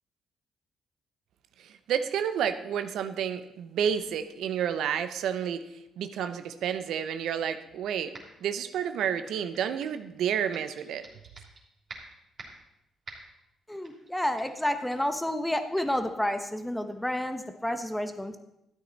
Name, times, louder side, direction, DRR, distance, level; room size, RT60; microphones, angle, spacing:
voice 1, 1.6-5.6 6.0-8.1 8.4-11.1, right 8 dB, 80° right, 10 dB, 0.7 m, -30 dB
sound 1, 8.1-8.5 8.8-10.0 10.5-11.6 11.9-12.7 13.1-13.4 13.8-14.1 14.4-14.6 14.9-15.1 15.8-15.9, right 3 dB, 45° right, 3.2 m, -47 dB
voice 2, 13.7-18.4, left 1 dB, 5° left, 8 dB, 1.0 m, -30 dB
13.0 x 9.1 x 4.1 m, 0.83 s
cardioid pair, 90°, 0 cm